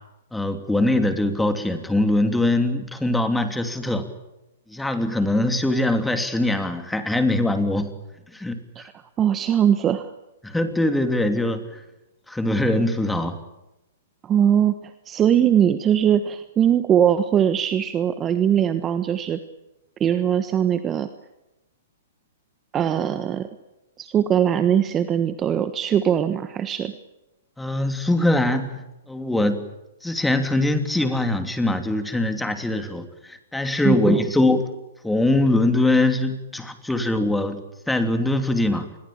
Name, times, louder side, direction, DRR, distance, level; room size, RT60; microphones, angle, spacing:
voice 1, 0.3-4.1 4.7-7.9 8.3-8.9 10.4-11.8 12.3-13.4 27.6-29.6 30.0-34.6 35.0-37.6 37.9-38.9, left 1 dB, 5° left, 7 dB, 3.0 m, -22 dB
voice 2, 9.2-10.1 14.2-19.4 20.0-21.1 22.7-23.5 24.0-26.9 33.8-34.3, right 9 dB, 20° right, 10 dB, 1.3 m, -21 dB
27.0 x 22.0 x 8.9 m, 0.95 s
hypercardioid pair, 130°, 0 cm